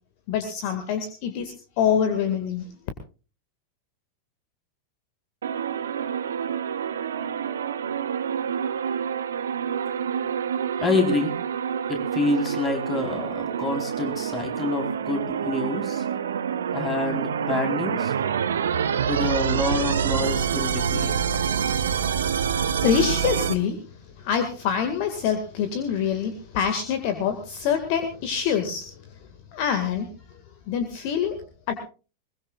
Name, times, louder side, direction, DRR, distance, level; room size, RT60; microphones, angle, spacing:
voice 1, 0.3-2.7 21.6-21.7 22.7-23.8 24.2-28.8 29.5-30.1 30.7-31.4 31.7-31.8, left 8 dB, 45° left, 8 dB, 2.0 m, -25 dB
sound 1, 5.4-23.5, right 8 dB, 65° right, 1.0 m, -27 dB
voice 2, 10.8-11.3 11.9-16.1 16.7-18.1 19.1-21.2, left 3 dB, 20° left, 4 dB, 4.2 m, -27 dB
22.0 x 21.0 x 2.4 m, 0.34 s
figure-of-eight pair, 90°, 0 cm